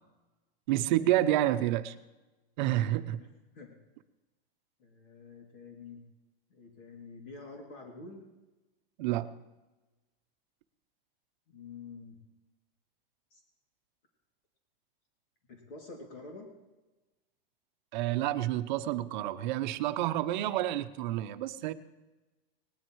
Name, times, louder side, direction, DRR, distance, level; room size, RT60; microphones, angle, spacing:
voice 1, 0.7-1.9 2.6-3.2 9.0-9.3 17.9-21.7, right 14 dB, 50° right, 10 dB, 0.8 m, -29 dB
voice 2, 4.8-6.0 6.5-8.2 11.5-12.2 13.3-13.4 15.5-16.5, left 3 dB, 65° left, 0 dB, 2.7 m, -47 dB
19.5 x 12.5 x 3.1 m, 1.1 s
supercardioid pair, 160°, 30 cm